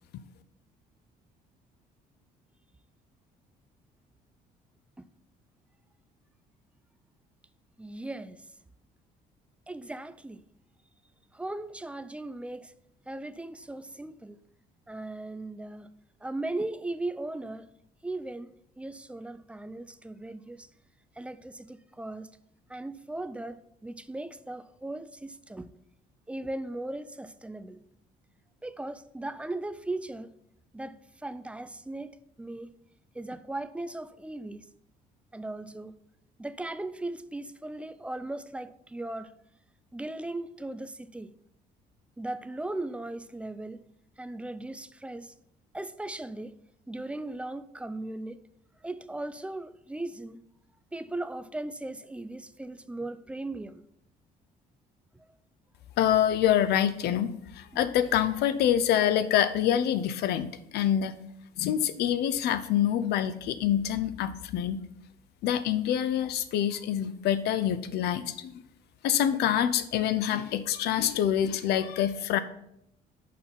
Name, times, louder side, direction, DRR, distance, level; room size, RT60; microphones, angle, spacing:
voice 1, 7.8-8.5 9.7-10.4 11.3-12.7 13.1-14.4 14.9-15.9 16.2-17.7 18.0-20.7 21.2-22.3 22.7-25.7 26.3-27.8 28.6-30.3 30.7-32.7 33.1-34.7 35.3-36.0 36.4-39.3 39.9-41.3 42.2-43.8 44.2-45.3 45.7-46.5 46.9-48.4 48.8-50.4 50.9-53.8 55.1-55.2, right 2 dB, 5° right, 0.4 m, -38 dB
voice 2, 56.0-61.2 61.6-64.8 65.4-68.5 69.0-72.4, left 10 dB, 75° left, 0.7 m, -26 dB
6.6 x 5.4 x 5.8 m
cardioid pair, 110°, 17 cm